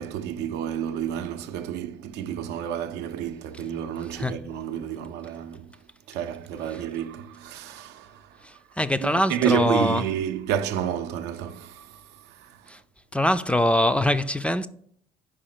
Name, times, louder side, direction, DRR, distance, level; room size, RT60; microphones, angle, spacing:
voice 1, 0.0-5.8 6.1-8.6 9.0-12.8, right 9 dB, 90° right, 0.6 m, -30 dB
voice 2, 8.4-10.0 12.7-12.8 13.1-14.7, left 1 dB, 5° left, 0.3 m, -23 dB
5.0 x 4.9 x 5.8 m
cardioid pair, 110°, 17 cm